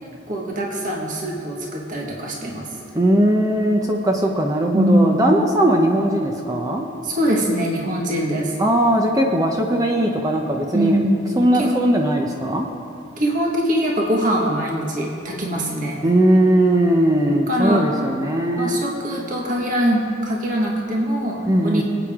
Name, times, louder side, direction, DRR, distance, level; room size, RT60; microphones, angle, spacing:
voice 1, 0.0-2.7 4.7-5.4 7.0-8.5 10.7-11.9 13.2-16.0 17.5-17.8 18.6-21.8, right 1 dB, 45° right, -2 dB, 1.6 m, -22 dB
voice 2, 2.9-6.9 8.6-11.0 11.4-12.7 16.0-18.8 21.4-21.8, right 1 dB, 20° right, 1 dB, 0.8 m, -19 dB
23.5 x 8.8 x 3.6 m, 2.9 s
head